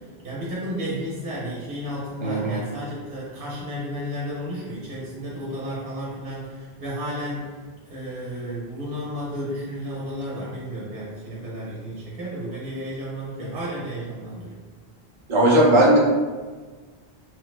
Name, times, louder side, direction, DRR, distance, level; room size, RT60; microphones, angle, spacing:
voice 1, 0.2-7.5 7.9-14.6, equal, 60° right, -6 dB, 0.9 m, -32 dB
voice 2, 2.2-2.6 15.3-16.0, right 1 dB, 35° right, -3 dB, 0.5 m, -17 dB
3.1 x 2.1 x 3.1 m, 1.4 s
omnidirectional pair, 1.0 m